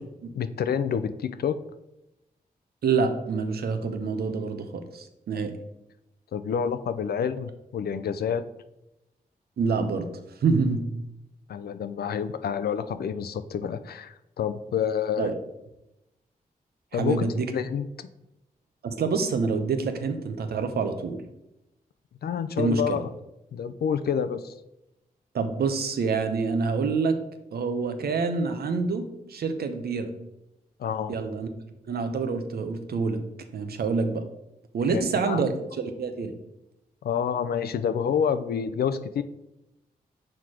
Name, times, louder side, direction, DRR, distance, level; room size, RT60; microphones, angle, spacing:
voice 1, 0.4-1.6 6.3-8.4 11.5-15.3 16.9-17.3 17.5-17.9 22.2-23.1 23.5-24.5 30.8-31.1 34.9-35.5 37.0-39.2, left 7 dB, 85° left, 11 dB, 0.5 m, -28 dB
voice 2, 2.8-5.5 9.6-10.1 10.4-10.8 15.2-15.3 16.9-17.5 18.8-21.2 22.6-23.0 25.3-27.2 27.5-30.1 31.1-31.5 31.9-33.2 33.5-34.2 34.7-36.3, right 4 dB, 85° right, 8 dB, 0.7 m, -27 dB
6.0 x 4.4 x 4.8 m, 0.91 s
cardioid pair, 65°, 16 cm